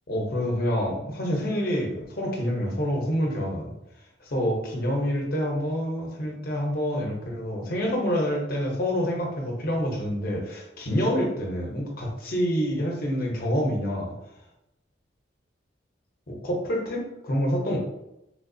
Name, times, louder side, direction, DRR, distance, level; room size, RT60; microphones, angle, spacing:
voice 1, 0.1-3.7 4.2-14.1 16.3-17.8, equal, 55° left, -1 dB, 0.8 m, -27 dB
3.4 x 2.8 x 2.7 m, 0.89 s
head